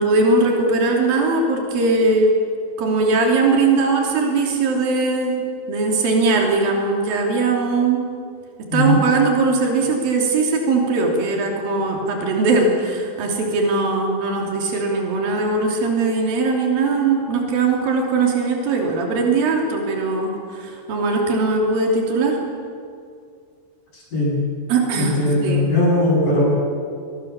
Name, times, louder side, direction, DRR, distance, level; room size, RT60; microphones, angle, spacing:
voice 1, 0.0-2.3 2.8-8.1 8.6-22.4 24.7-25.8, right 3 dB, 60° right, 0 dB, 4.8 m, -20 dB
voice 2, 24.1-24.4 25.0-26.6, left 1 dB, 55° left, -4 dB, 9.7 m, -18 dB
26.5 x 21.0 x 7.2 m, 2.3 s
omnidirectional pair, 4.7 m